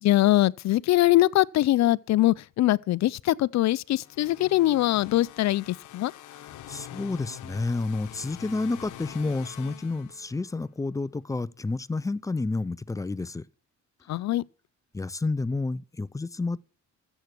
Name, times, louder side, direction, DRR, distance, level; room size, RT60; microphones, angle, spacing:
voice 1, 0.0-6.1 14.1-14.4, left 15 dB, 65° left, 0.5 m, -22 dB
sound 1, 4.0-10.6, left 13 dB, 85° left, 1.0 m, -45 dB
voice 2, 6.7-13.4 14.9-16.6, left 3 dB, 10° left, 0.5 m, -30 dB
13.5 x 8.2 x 6.0 m
cardioid pair, 90°, 30 cm